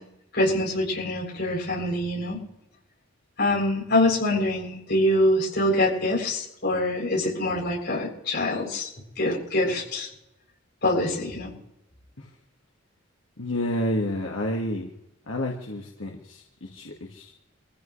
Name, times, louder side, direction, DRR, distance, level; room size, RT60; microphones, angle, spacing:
voice 1, 0.3-2.4 3.4-8.9 9.2-10.1 10.8-11.5, left 1 dB, 55° left, -2 dB, 7.7 m, -24 dB
voice 2, 13.4-14.9 15.3-17.3, left 1 dB, 85° left, 0 dB, 1.9 m, -30 dB
25.5 x 15.5 x 3.3 m, 0.86 s
head